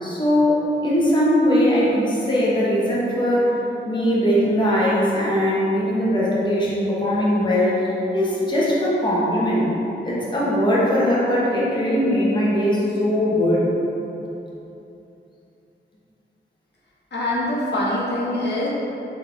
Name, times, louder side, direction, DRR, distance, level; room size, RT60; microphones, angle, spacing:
voice 1, 0.0-3.6 3.8-7.9 8.1-9.7 10.0-13.7, equal, 25° left, -7 dB, 1.1 m, -20 dB
voice 2, 17.1-18.7, left 1 dB, 65° left, -8 dB, 1.2 m, -24 dB
3.7 x 3.4 x 3.3 m, 2.9 s
cardioid pair, 55°, 19 cm